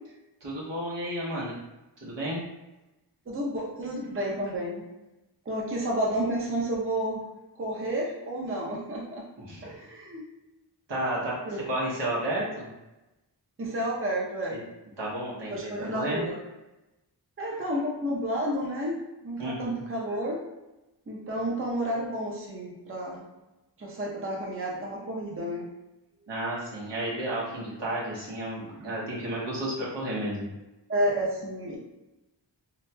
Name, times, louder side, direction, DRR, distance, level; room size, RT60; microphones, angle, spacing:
voice 1, 0.4-1.5 2.0-2.4 9.5-9.7 10.9-11.4 11.7-12.7 15.0-16.2 19.4-19.8 26.3-30.5, right 1 dB, 80° right, -5 dB, 1.0 m, -32 dB
voice 2, 3.3-4.8 5.5-7.2 7.6-9.2 9.6-10.2 11.5-11.6 13.6-14.7 15.5-16.4 17.4-20.4 21.1-23.3 23.8-25.7 30.9-31.8, right 1 dB, 30° right, -3 dB, 0.6 m, -31 dB
2.9 x 2.8 x 2.2 m, 1.0 s
wide cardioid pair, 75°, 42 cm